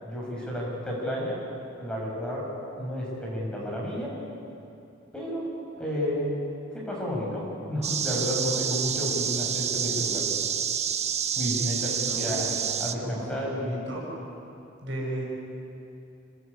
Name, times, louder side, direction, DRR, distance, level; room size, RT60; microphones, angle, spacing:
voice 1, 0.0-1.4 1.8-2.4 2.8-4.1 5.1-5.4 5.8-6.3 6.7-10.2 11.3-12.5 12.8-13.8, equal, 5° left, -4 dB, 6.4 m, -31 dB
sound 1, 7.8-12.9, right 8 dB, 35° right, 0.9 m, -28 dB
voice 2, 11.6-12.4 13.0-14.0 14.8-15.2, right 1 dB, 75° right, -2 dB, 7.4 m, -35 dB
26.5 x 19.0 x 8.4 m, 2.7 s
head